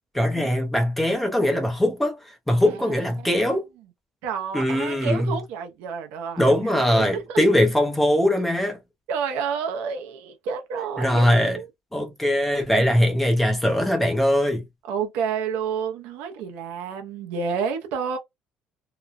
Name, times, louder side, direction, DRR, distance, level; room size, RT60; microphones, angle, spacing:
voice 1, 0.1-2.2 2.5-3.6 4.5-5.4 6.4-8.8 11.0-11.6 11.9-14.6, left 1 dB, 5° left, 0.6 m, -21 dB
voice 2, 2.6-3.4 4.2-7.4 9.1-11.7 14.9-18.2, right 6 dB, 80° right, 0.7 m, -30 dB
2.9 x 2.1 x 2.5 m
cardioid pair, 165°, 3 cm